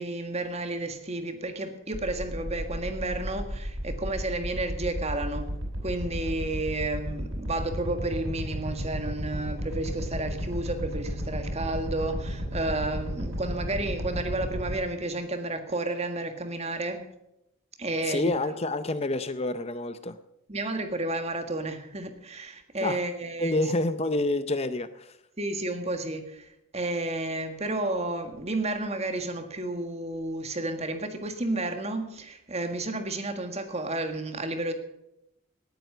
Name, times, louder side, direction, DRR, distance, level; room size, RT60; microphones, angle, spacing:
voice 1, 0.0-5.5 5.8-17.0 17.8-18.5 20.5-23.7 25.4-34.7, right 2 dB, 30° right, 7 dB, 1.7 m, -31 dB
sound 1, 1.9-14.7, equal, 85° right, 5.9 m, -33 dB
voice 2, 18.1-20.2 22.8-23.0 23.4-25.1, left 2 dB, 30° left, 12 dB, 0.6 m, -28 dB
18.5 x 9.0 x 6.8 m, 0.84 s
head